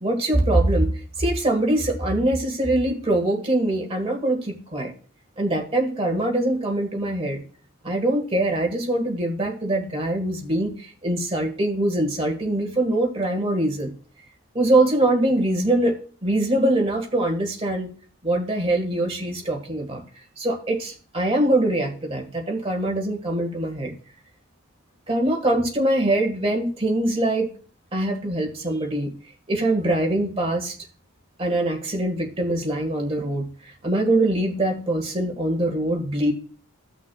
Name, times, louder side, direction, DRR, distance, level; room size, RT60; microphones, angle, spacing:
voice 1, 0.0-0.9 1.2-4.9 5.4-7.4 7.8-13.9 14.5-17.9 18.2-20.0 20.4-23.9 25.1-27.5 27.9-29.1 29.5-30.8 31.4-36.3, right 1 dB, 25° right, 2 dB, 1.6 m, -23 dB
16.0 x 6.1 x 2.3 m, 0.41 s
head